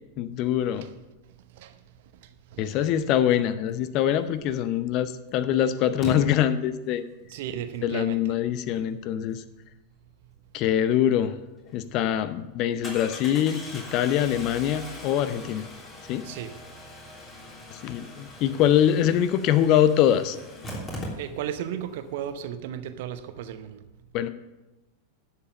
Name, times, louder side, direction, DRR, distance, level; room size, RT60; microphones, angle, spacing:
voice 1, 0.2-0.9 2.6-7.0 7.8-9.4 10.5-11.3 11.7-15.7 16.1-16.3 17.7-20.4 24.1-24.3, left 10 dB, 40° left, 0.7 m, -24 dB
Engine starting, 4.5-4.6 6.0-6.2 11.2-11.3 11.7-11.8 12.8-21.6 21.9-22.0 22.2-22.3, left 1 dB, 20° left, 3.3 m, -40 dB
voice 2, 7.3-8.4 16.2-16.6 21.2-23.8, right 10 dB, 50° right, 0.8 m, -35 dB
11.0 x 7.2 x 6.7 m
figure-of-eight pair, 90°, 0 cm